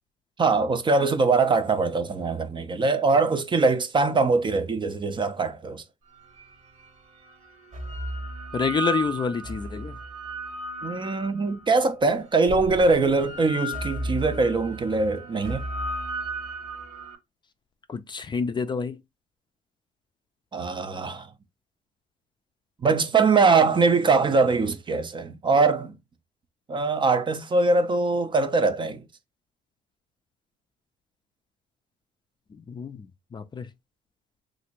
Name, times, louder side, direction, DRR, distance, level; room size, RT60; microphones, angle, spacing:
voice 1, 0.4-5.8 10.8-15.6 20.5-21.3 22.8-25.9 26.7-29.0, right 4 dB, 30° right, 0.5 m, -22 dB
sound 1, 6.4-6.5 7.5-11.7 12.5-17.2, right 2 dB, 45° right, 0.9 m, -34 dB
voice 2, 8.5-10.0 17.9-19.0 32.7-33.0 33.3-33.7, left 5 dB, 25° left, 0.4 m, -28 dB
3.2 x 2.6 x 2.9 m
cardioid pair, 110°, 17 cm